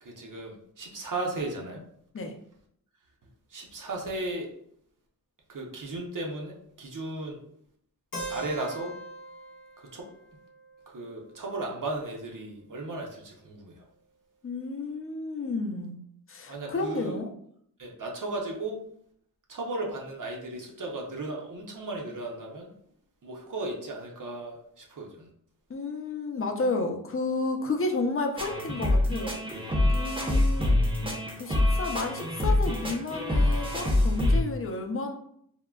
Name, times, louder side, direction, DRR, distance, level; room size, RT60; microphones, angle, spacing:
voice 1, 0.0-1.8 3.5-4.5 5.5-7.4 8.3-8.9 9.8-10.1 10.9-13.8 16.5-17.2 17.8-18.8 19.5-22.7 23.2-25.3, right 2 dB, 60° right, -1 dB, 0.6 m, -35 dB
Keyboard (musical), 8.1-12.0, right 1 dB, 75° left, 0.7 m, -42 dB
voice 2, 14.4-16.0 16.3-17.3 25.7-30.7 31.4-35.1, left 3 dB, 40° left, 4 dB, 0.4 m, -32 dB
sound 1, 28.4-34.4, left 1 dB, 15° right, 0.6 m, -25 dB
3.5 x 2.1 x 2.2 m, 0.68 s
wide cardioid pair, 90°, 36 cm